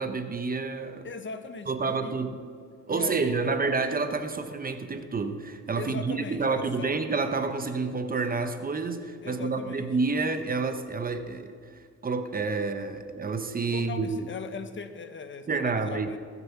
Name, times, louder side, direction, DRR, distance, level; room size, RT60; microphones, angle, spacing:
voice 1, 0.0-1.1 1.7-2.4 2.9-14.3 15.5-16.2, right 4 dB, 30° right, 8 dB, 0.9 m, -29 dB
voice 2, 1.0-2.2 2.9-3.6 5.8-6.9 9.2-9.9 13.7-16.2, left 5 dB, 40° left, 9 dB, 1.0 m, -39 dB
19.5 x 7.0 x 5.9 m, 2.1 s
cardioid pair, 90°, 30 cm